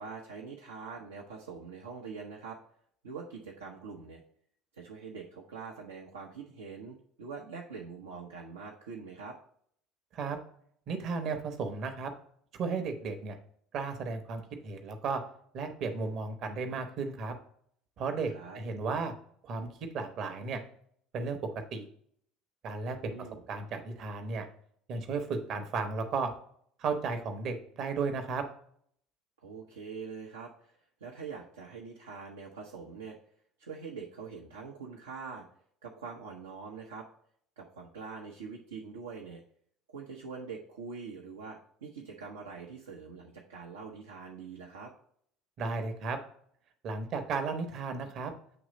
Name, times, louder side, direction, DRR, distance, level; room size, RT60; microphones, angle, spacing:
voice 1, 0.0-2.6 3.0-4.2 4.7-9.4 18.3-18.6 23.0-23.4 29.4-33.2 33.6-35.5 35.8-37.1 37.6-39.4 39.9-44.9, right 5 dB, 80° right, -2 dB, 0.7 m, -44 dB
voice 2, 10.9-12.1 12.5-13.4 13.7-15.2 15.5-17.3 18.0-19.1 19.4-19.7 19.9-20.6 21.1-21.4 21.7-21.9 22.6-23.1 23.5-24.5 24.9-26.3 26.8-28.4 45.6-46.2 46.8-48.3, right 4 dB, 50° right, 6 dB, 1.0 m, -34 dB
7.8 x 3.1 x 4.0 m, 0.64 s
figure-of-eight pair, 65°, 0 cm